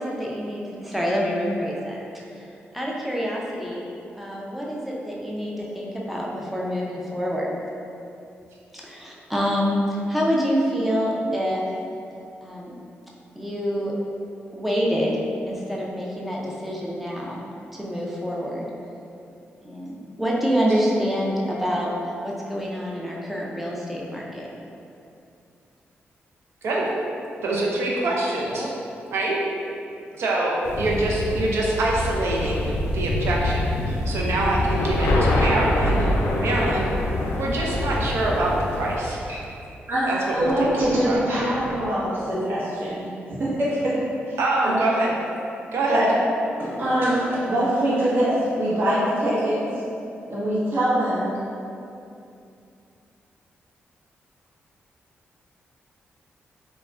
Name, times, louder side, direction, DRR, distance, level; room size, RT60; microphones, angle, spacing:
voice 1, 0.0-2.5 2.7-3.9 4.1-7.6 8.8-11.7 12.4-12.7 13.4-13.9 14.5-17.4 17.7-18.6 19.6-21.9 22.2-24.5 28.5-28.7, equal, 5° right, -4 dB, 0.4 m, -26 dB
voice 2, 27.4-28.7 29.1-29.4 30.2-33.6 33.9-36.9 37.4-39.2 40.1-40.7 41.0-41.2 44.4-45.1 45.7-46.1, right 2 dB, 80° right, -3 dB, 0.5 m, -25 dB
sound 1, 30.6-39.0, left 1 dB, 85° left, 0.3 m, -25 dB
voice 3, 39.9-44.0 44.3-44.4 44.6-44.8 45.9-46.1 46.6-49.6 50.3-51.3, right 1 dB, 55° right, -9 dB, 0.8 m, -23 dB
2.3 x 2.1 x 3.4 m, 2.6 s
wide cardioid pair, 130°, 4 cm